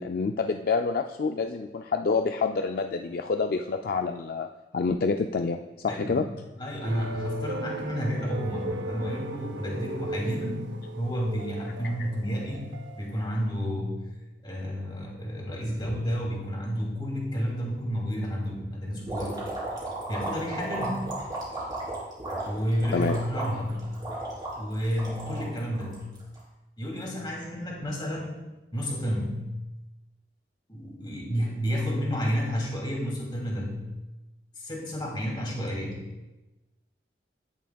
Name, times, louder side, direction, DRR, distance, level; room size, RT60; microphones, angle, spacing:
voice 1, 0.0-6.3 22.9-23.2, left 4 dB, 55° left, 5 dB, 0.4 m, -27 dB
voice 2, 5.9-6.3 6.6-10.6 11.0-12.7 13.0-14.0 14.4-19.5 20.1-21.1 22.4-23.8 24.5-26.1 26.8-28.4 28.7-29.5 30.7-33.8 34.6-36.0, equal, 25° left, -2 dB, 2.6 m, -31 dB
sound 1, 6.8-13.4, right 2 dB, 85° right, 0.7 m, -37 dB
sound 2, 19.1-26.4, right 2 dB, 25° right, 3.4 m, -35 dB
17.0 x 6.9 x 2.3 m, 1.1 s
head